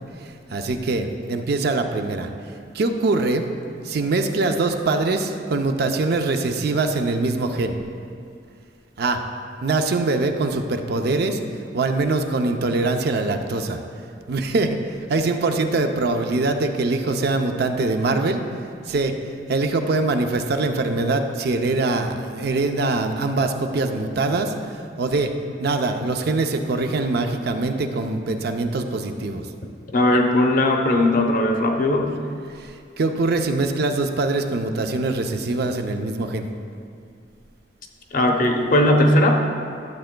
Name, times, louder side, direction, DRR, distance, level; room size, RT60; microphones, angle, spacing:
voice 1, 0.5-2.3 2.7-3.5 3.8-7.8 9.0-9.2 9.6-11.4 11.7-13.8 14.3-14.8 15.1-18.4 18.9-19.1 19.5-24.5 25.0-25.3 25.6-29.4 32.6-36.4, right 3 dB, 60° right, 6 dB, 0.5 m, -23 dB
voice 2, 29.9-32.1 38.1-39.4, left 1 dB, 50° left, 2 dB, 0.7 m, -18 dB
11.5 x 7.6 x 2.2 m, 2.4 s
head